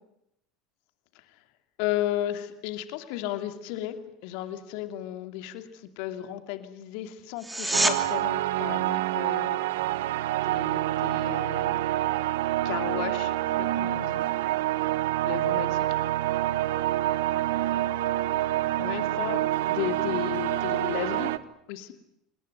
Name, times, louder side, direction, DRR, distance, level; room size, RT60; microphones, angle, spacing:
voice 1, 1.8-9.6 10.3-11.8 12.6-14.2 15.3-15.8 18.8-19.4 19.7-21.3 21.7-21.9, left 13 dB, 65° left, 9 dB, 2.6 m, -34 dB
sound 1, 7.4-8.0 19.3-19.4, right 1 dB, 10° right, 3.1 m, -25 dB
sad tune, 7.7-21.4, right 14 dB, 70° right, 1.0 m, -27 dB
27.0 x 20.0 x 9.5 m, 0.82 s
hypercardioid pair, 80°, 0 cm